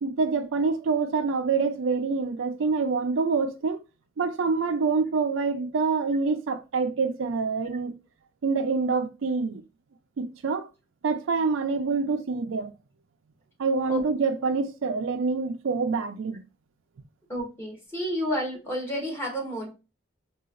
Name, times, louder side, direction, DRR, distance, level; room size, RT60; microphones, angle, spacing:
voice 1, 0.0-3.8 4.2-7.9 8.4-9.6 10.2-10.7 11.0-12.7 13.6-16.4, right 4 dB, 90° right, 0.4 m, -26 dB
voice 2, 17.3-19.7, equal, 15° left, 1.0 m, -30 dB
3.9 x 2.4 x 2.4 m
head